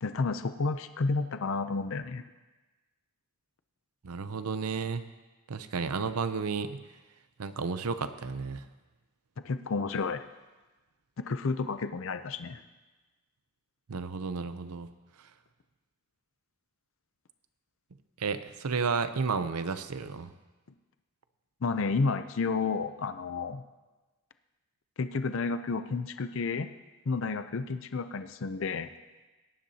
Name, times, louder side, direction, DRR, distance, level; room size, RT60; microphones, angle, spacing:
voice 1, 0.0-2.2 9.4-10.2 11.2-12.6 21.6-23.6 25.0-26.7 27.1-28.9, left 4 dB, 60° left, 10 dB, 0.5 m, -31 dB
voice 2, 4.0-5.0 5.5-6.8 7.4-8.6 13.9-14.9 18.2-20.3, right 5 dB, 90° right, 11 dB, 0.6 m, -32 dB
18.0 x 10.5 x 2.8 m, 1.2 s
head